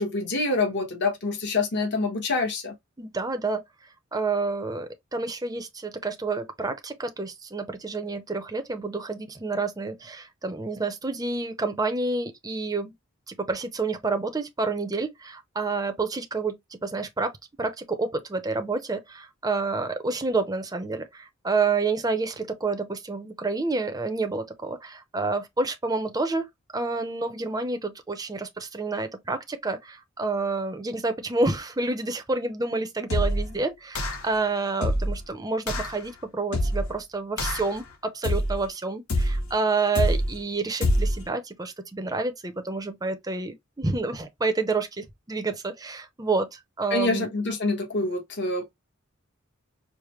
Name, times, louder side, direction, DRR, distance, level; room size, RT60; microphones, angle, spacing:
voice 1, 0.0-2.7 46.9-48.7, left 3 dB, 55° left, 1.2 m, -26 dB
voice 2, 3.0-3.6 4.1-12.9 13.3-17.3 17.6-26.5 26.7-47.3, right 3 dB, 20° right, 0.7 m, -29 dB
sound 1, 33.1-33.5 33.9-34.3 34.8-35.2 35.7-35.9 36.5-36.9 37.4-37.8 38.2-38.7 39.1-39.5 39.9-40.4 40.8-41.2, left 1 dB, 90° left, 1.2 m, -25 dB
5.0 x 2.1 x 3.0 m
head